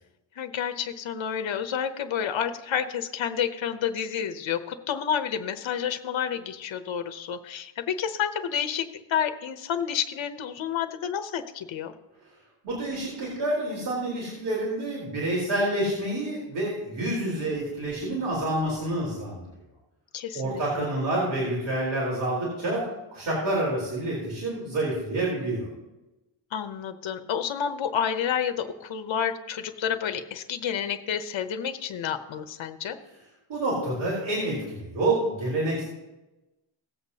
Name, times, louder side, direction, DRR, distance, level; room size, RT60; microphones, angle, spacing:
voice 1, 0.4-11.9 20.1-20.9 26.5-33.0, left 8 dB, 70° left, 8 dB, 0.9 m, -30 dB
voice 2, 12.6-19.4 20.3-22.8 23.1-25.7 33.5-35.8, right 1 dB, 80° right, -6 dB, 4.2 m, -28 dB
18.0 x 8.0 x 2.8 m, 1.0 s
wide cardioid pair, 145°, 48 cm